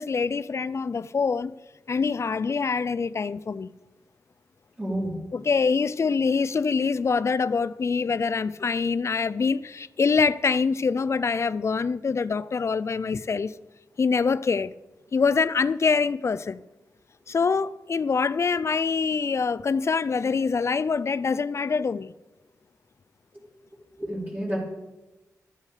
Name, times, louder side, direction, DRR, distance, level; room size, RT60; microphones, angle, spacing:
voice 1, 0.0-1.5 1.9-3.7 5.3-13.5 14.0-14.7 15.1-16.6 17.3-22.1, left 5 dB, 50° left, 0.4 m, -25 dB
voice 2, 4.8-5.1 24.0-24.6, right 1 dB, 30° right, 4.2 m, -29 dB
12.5 x 8.4 x 5.0 m
cardioid pair, 75°, 6 cm